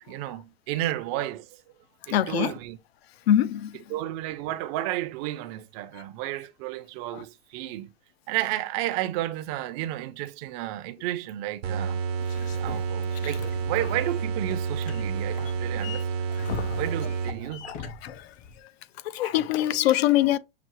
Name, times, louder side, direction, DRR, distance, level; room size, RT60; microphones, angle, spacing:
voice 1, 0.0-1.4 2.1-2.8 3.9-7.9 8.3-12.0 12.6-16.1 16.8-17.7, right 14 dB, 40° right, 0.5 m, -32 dB
voice 2, 2.1-2.5 3.3-3.7 7.1-7.2 16.5-16.8 17.6-18.2 19.1-20.4, left 12 dB, 85° left, 0.5 m, -24 dB
sound 1, 11.6-17.7, right 5 dB, 85° right, 0.9 m, -30 dB
sound 2, 12.2-18.6, left 7 dB, 25° left, 0.5 m, -43 dB
5.8 x 2.0 x 3.0 m
supercardioid pair, 135°, 30 cm